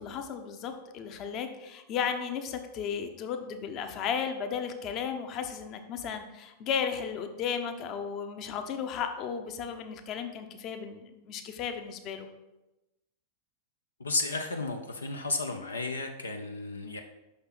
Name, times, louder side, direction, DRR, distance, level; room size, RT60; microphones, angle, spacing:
voice 1, 0.0-12.3, left 7 dB, 35° left, 6 dB, 0.8 m, -34 dB
voice 2, 14.0-17.0, left 3 dB, 75° left, 5 dB, 0.6 m, -33 dB
6.0 x 5.4 x 5.9 m, 1.0 s
figure-of-eight pair, 90°, 0 cm